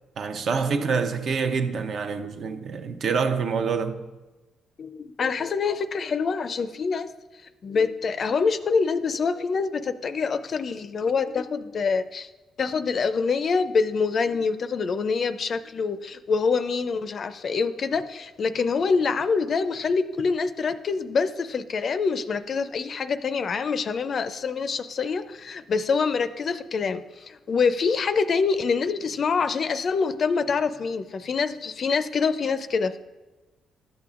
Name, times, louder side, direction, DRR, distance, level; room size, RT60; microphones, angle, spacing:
voice 1, 0.2-4.0, right 5 dB, 60° right, 0.6 m, -26 dB
voice 2, 4.8-7.1 7.6-12.3 12.6-33.0, left 5 dB, 50° left, 0.4 m, -25 dB
12.0 x 6.8 x 2.4 m
cardioid pair, 90°, 0 cm